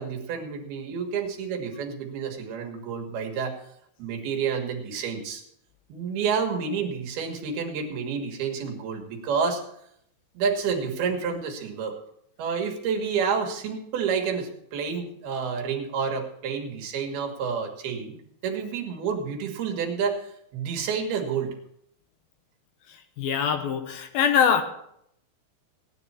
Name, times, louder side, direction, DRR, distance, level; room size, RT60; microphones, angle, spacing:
voice 1, 0.0-3.6 4.0-5.4 5.9-9.6 10.3-12.0 12.4-21.5, right 6 dB, 70° right, 2 dB, 3.3 m, -29 dB
voice 2, 23.2-24.6, left 7 dB, 70° left, 7 dB, 2.5 m, -23 dB
17.0 x 10.5 x 4.3 m, 0.72 s
omnidirectional pair, 4.9 m